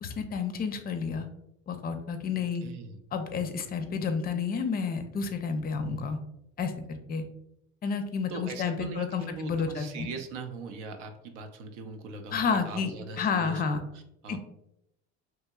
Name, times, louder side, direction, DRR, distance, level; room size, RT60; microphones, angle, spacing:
voice 1, 0.0-1.3 1.7-2.6 3.1-6.2 6.6-6.7 7.1-7.2 7.8-10.1 12.3-12.9 13.2-13.8 14.3-14.4, left 5 dB, 30° left, 8 dB, 0.4 m, -30 dB
voice 2, 2.6-3.0 8.3-14.4, right 4 dB, 85° right, 6 dB, 0.6 m, -41 dB
2.8 x 2.7 x 2.3 m, 0.81 s
supercardioid pair, 80°, 34 cm